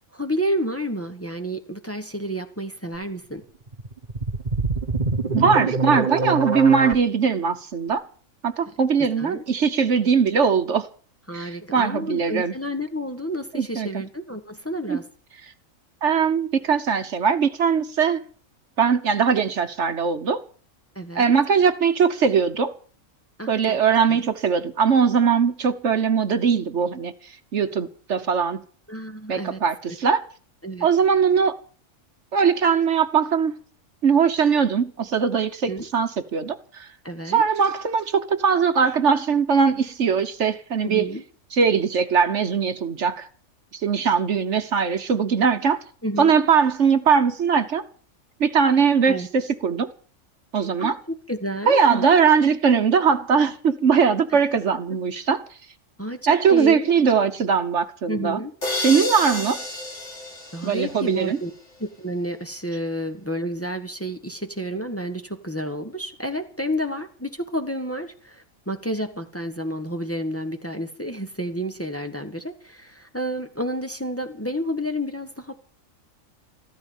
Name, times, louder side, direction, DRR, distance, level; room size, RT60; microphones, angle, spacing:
voice 1, 0.1-3.4 9.2-9.4 11.3-15.0 20.9-21.3 23.4-23.8 24.1-24.2 28.9-29.6 29.8-29.9 30.6-30.9 35.7-35.8 37.0-37.4 40.8-41.2 46.0-46.4 49.1-49.3 50.8-50.9 51.3-52.2 54.3-54.4 56.0-56.2 56.5-56.9 58.1-58.5 60.5-61.5 61.8-75.5, equal, 10° left, 1.4 m, -30 dB
sound 1, 3.7-6.9, right 3 dB, 35° right, 1.2 m, -24 dB
voice 2, 5.3-8.0 8.4-10.9 11.3-12.5 13.5-14.0 14.9-15.0 16.0-18.2 18.8-20.4 21.1-22.7 23.5-27.1 27.5-28.6 29.3-30.2 30.8-31.6 32.3-33.6 34.0-36.9 37.2-41.1 41.5-43.3 43.7-45.8 46.2-47.8 48.4-49.9 50.5-51.0 51.7-55.4 56.3-58.4 58.8-59.6 60.6-61.4, right 6 dB, 60° right, 1.3 m, -20 dB
sound 2, 58.6-61.4, left 2 dB, 60° left, 4.0 m, -30 dB
14.5 x 13.5 x 7.2 m
omnidirectional pair, 1.4 m